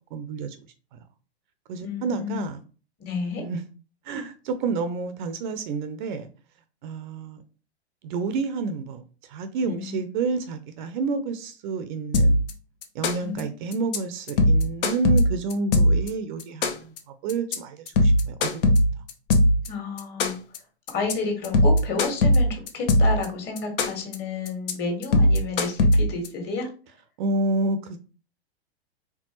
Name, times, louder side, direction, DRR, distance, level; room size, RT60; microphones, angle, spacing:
voice 1, 0.1-0.6 0.9-1.0 1.7-2.6 3.2-3.6 4.0-6.3 6.8-7.4 8.0-12.4 12.9-16.9 17.2-18.6 27.2-28.0, right 4 dB, 45° right, 0.7 m, -29 dB
voice 2, 1.8-2.4 3.0-3.4 9.7-10.0 13.2-13.5 19.7-20.4 20.9-26.7, left 4 dB, 30° left, 1.7 m, -31 dB
sound 1, 12.1-12.5 12.8-13.4 13.7-14.0 14.3-16.1 16.4-17.0 17.3-17.5 17.9-19.7 20.0-20.6 20.9-21.1 21.4-23.2 23.6-24.1 24.5-24.7 25.0-26.3, left 1 dB, 55° left, 1.0 m, -19 dB
4.5 x 3.5 x 3.0 m
hypercardioid pair, 110°, 33 cm